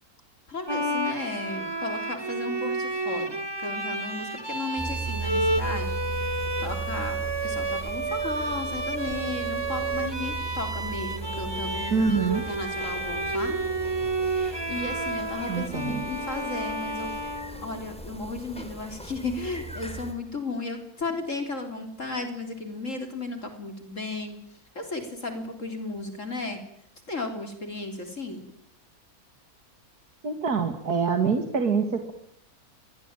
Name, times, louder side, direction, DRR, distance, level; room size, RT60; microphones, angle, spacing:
voice 1, 0.5-13.6 14.2-17.1 17.6-24.4 24.8-26.6 27.1-28.4, left 3 dB, 55° left, 6 dB, 4.1 m, -35 dB
Bowed string instrument, 0.7-18.1, right 2 dB, 15° right, 1.7 m, -31 dB
sound 1, 4.8-20.1, right 4 dB, 5° left, 4.1 m, -37 dB
voice 2, 11.9-12.4 15.5-16.0 30.2-32.1, right 5 dB, 85° right, 7 dB, 2.5 m, -25 dB
27.5 x 22.5 x 9.0 m, 0.72 s
omnidirectional pair, 1.6 m